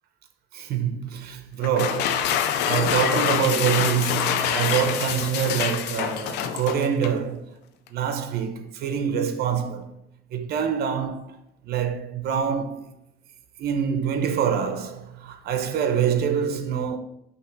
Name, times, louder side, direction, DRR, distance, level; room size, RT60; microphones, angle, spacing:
voice 1, 0.5-7.5 7.9-9.9 10.3-11.4 11.7-12.8 13.6-17.0, right 8 dB, 70° right, 0.9 m, -25 dB
sound 1, 1.6-7.2, left 9 dB, 90° left, 0.6 m, -25 dB
5.6 x 3.4 x 5.8 m
cardioid pair, 110°, 17 cm